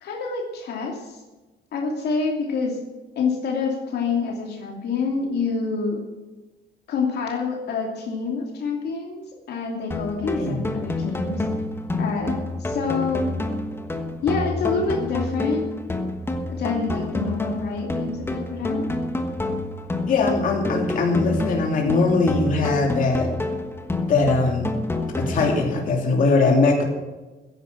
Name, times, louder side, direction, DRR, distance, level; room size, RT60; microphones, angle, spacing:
voice 1, 0.0-1.2 1.7-2.8 3.2-6.0 6.9-9.2 9.5-11.4 12.0-13.3 14.2-15.6 16.5-18.9, left 4 dB, 65° left, 1 dB, 2.8 m, -27 dB
sound 1, 9.9-25.9, left 2 dB, 10° left, 1.2 m, -28 dB
voice 2, 10.2-10.7 20.1-23.3 24.1-24.7 25.2-26.8, left 3 dB, 45° left, 0 dB, 2.9 m, -21 dB
15.5 x 10.5 x 6.1 m, 1.2 s
cardioid pair, 165°, 18 cm